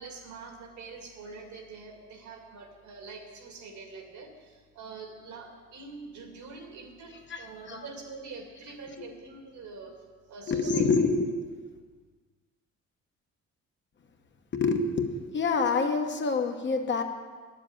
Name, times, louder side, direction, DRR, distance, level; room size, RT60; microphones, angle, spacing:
voice 1, 0.0-9.9 10.3-10.8, right 4 dB, 75° right, 2 dB, 2.5 m, -45 dB
voice 2, 7.3-7.8 10.5-11.3 14.5-17.0, left 4 dB, 40° left, 5 dB, 1.1 m, -27 dB
10.5 x 7.5 x 8.9 m, 1.5 s
cardioid pair, 150°, 29 cm